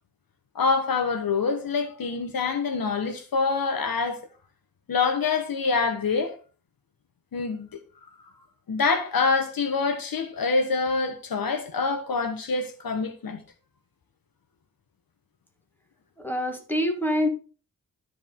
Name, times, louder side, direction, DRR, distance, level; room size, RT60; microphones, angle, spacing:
voice 1, 0.5-4.2 4.9-6.4 7.3-7.7 8.7-13.4, left 4 dB, 85° left, 1.3 m, -26 dB
voice 2, 16.2-17.3, left 1 dB, 5° left, 2.1 m, -25 dB
13.0 x 4.8 x 3.8 m
wide cardioid pair, 105°, 34 cm